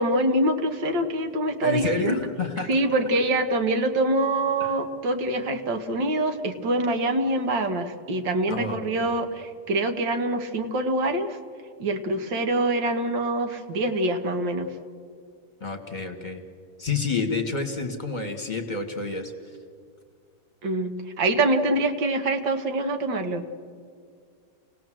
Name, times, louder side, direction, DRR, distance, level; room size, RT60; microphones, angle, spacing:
voice 1, 0.0-2.2 2.7-11.4 11.8-14.7 20.6-23.5, right 1 dB, 85° right, 6 dB, 2.3 m, -25 dB
voice 2, 1.6-2.7 4.6-4.7 8.5-9.1 15.6-16.4 16.8-19.3, left 3 dB, 25° left, 3 dB, 1.9 m, -29 dB
29.5 x 19.0 x 7.7 m, 2.1 s
omnidirectional pair, 1.9 m